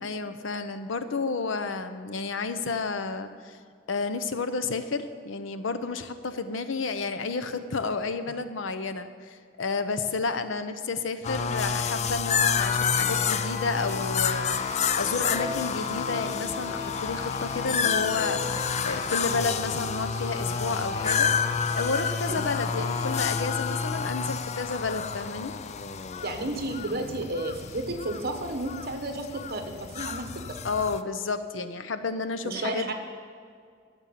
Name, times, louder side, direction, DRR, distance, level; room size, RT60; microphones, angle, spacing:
voice 1, 0.0-3.6 3.9-21.3 21.8-25.5 30.6-32.9, left 4 dB, 85° left, 10 dB, 0.7 m, -31 dB
sound 1, 11.2-31.0, left 6 dB, 35° left, 0.4 m, -29 dB
sound 2, 12.5-23.8, left 3 dB, 20° left, 1.4 m, -39 dB
voice 2, 26.2-30.3 32.4-32.9, right 2 dB, 55° right, 5 dB, 1.3 m, -32 dB
13.0 x 7.2 x 7.4 m, 2.1 s
head